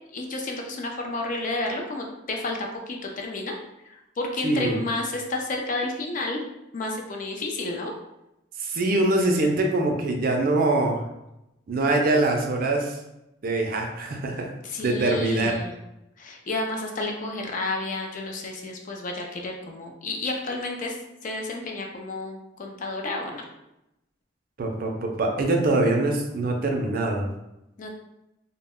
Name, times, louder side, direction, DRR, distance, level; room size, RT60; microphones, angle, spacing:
voice 1, 0.1-3.6 3.8-6.4 6.7-7.9 14.6-15.8 16.2-21.0 21.2-23.5 27.8-27.9, left 2 dB, 40° left, 2 dB, 0.3 m, -31 dB
voice 2, 4.4-4.8 8.6-11.0 11.7-13.0 13.4-14.5 14.8-15.6 24.6-27.3, right 2 dB, 45° right, 2 dB, 0.4 m, -23 dB
2.1 x 2.0 x 3.5 m, 0.90 s
head